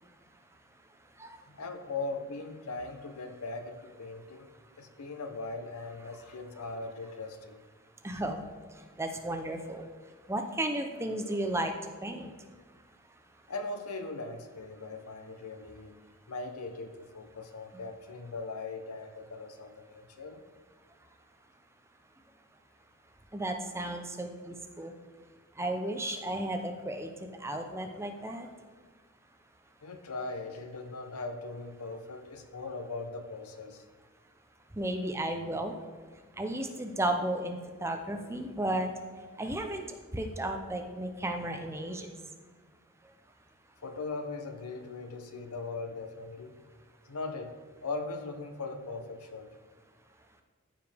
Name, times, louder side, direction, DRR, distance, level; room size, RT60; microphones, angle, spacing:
voice 1, 1.5-4.5 4.8-7.6 13.5-15.9 16.3-20.4 29.8-33.8 43.8-46.6 47.1-49.5, left 3 dB, 85° left, 7 dB, 0.8 m, -39 dB
voice 2, 8.0-8.4 9.0-9.9 10.3-11.7 12.0-12.3 23.3-24.9 25.6-27.1 27.4-28.5 34.8-35.7 36.4-38.9 39.4-39.8 40.1-42.1, right 1 dB, 10° right, 5 dB, 0.5 m, -33 dB
14.0 x 5.1 x 3.4 m, 1.5 s
head